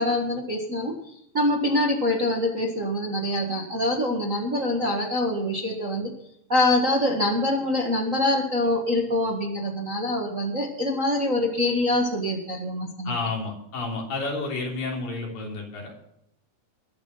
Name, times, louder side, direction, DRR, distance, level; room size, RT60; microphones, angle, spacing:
voice 1, 0.0-6.1 6.5-13.1, left 1 dB, 35° right, 0 dB, 1.3 m, -25 dB
voice 2, 13.0-16.0, left 3 dB, 75° left, 0 dB, 5.0 m, -30 dB
21.5 x 7.3 x 5.7 m, 0.78 s
omnidirectional pair, 4.0 m